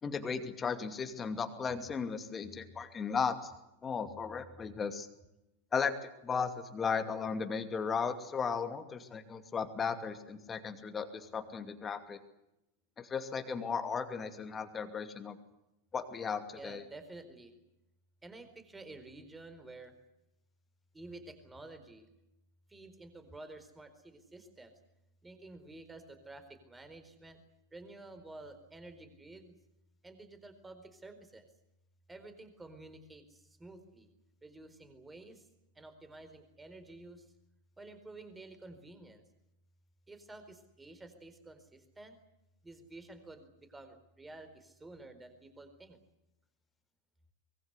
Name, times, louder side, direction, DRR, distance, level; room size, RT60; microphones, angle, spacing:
voice 1, 0.0-3.5 3.8-5.1 5.7-12.2 13.0-15.4 15.9-16.8, left 6 dB, 20° left, 8 dB, 2.5 m, -36 dB
voice 2, 16.5-17.5 18.2-19.9 20.9-22.1 22.7-24.7 25.2-27.4 27.7-29.6 30.0-31.4 32.1-34.1 34.4-35.5 35.7-37.3 37.8-39.2 40.1-42.2 42.6-46.0, right 2 dB, 10° right, 9 dB, 4.3 m, -51 dB
24.0 x 22.0 x 8.2 m, 0.87 s
figure-of-eight pair, 90°, 0 cm